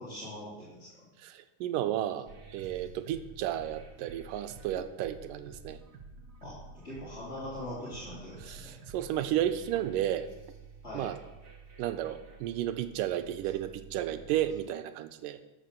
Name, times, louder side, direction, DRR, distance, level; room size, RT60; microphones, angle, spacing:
voice 1, 0.0-1.1 4.7-4.8 6.4-8.8 10.8-11.1, left 1 dB, 20° left, -9 dB, 3.0 m, -42 dB
voice 2, 1.2-5.8 8.5-10.3 10.9-11.2 11.8-15.4, right 12 dB, 80° right, 11 dB, 2.2 m, -33 dB
sound 1, 2.3-14.6, right 4 dB, 55° right, 1.1 m, -50 dB
13.0 x 5.8 x 6.7 m, 1.0 s
omnidirectional pair, 4.0 m